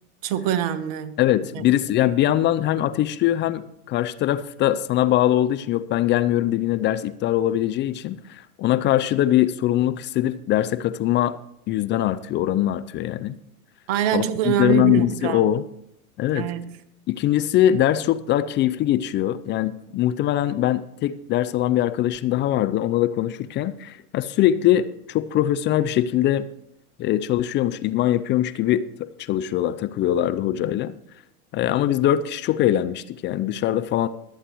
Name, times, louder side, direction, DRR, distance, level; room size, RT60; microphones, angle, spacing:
voice 1, 0.2-1.2 1.5-1.6 13.9-15.4 16.3-16.8, right 10 dB, 50° right, 1.2 m, -24 dB
voice 2, 1.2-11.4 11.7-13.3 14.1-15.6 16.2-16.5 17.1-26.5 27.0-30.9 31.5-34.1, left 12 dB, 25° left, 0.4 m, -22 dB
23.0 x 8.2 x 3.0 m
hypercardioid pair, 95°, 45 cm